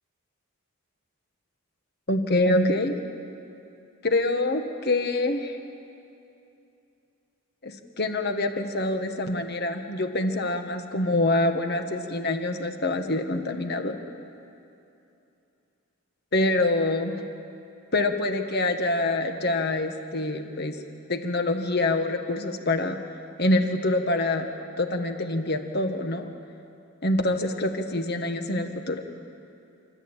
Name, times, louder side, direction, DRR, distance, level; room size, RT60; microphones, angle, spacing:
voice 1, 2.1-2.9 4.0-5.6 7.6-14.0 16.3-17.2 17.9-20.8 21.1-23.0 23.4-24.5 24.8-26.3 27.0-29.0, left 2 dB, 50° left, 6 dB, 1.5 m, -25 dB
28.5 x 13.5 x 9.0 m, 2.7 s
head